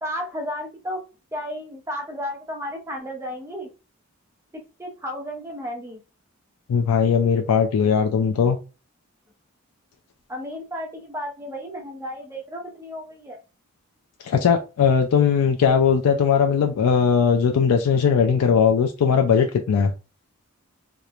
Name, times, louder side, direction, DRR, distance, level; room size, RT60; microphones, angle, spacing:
voice 1, 0.0-1.0 1.3-3.7 4.5-6.0 10.3-13.4, equal, 10° right, 0.5 m, -33 dB
voice 2, 6.7-8.6 14.2-19.9, left 6 dB, 85° left, 0.3 m, -19 dB
3.0 x 2.0 x 2.4 m
head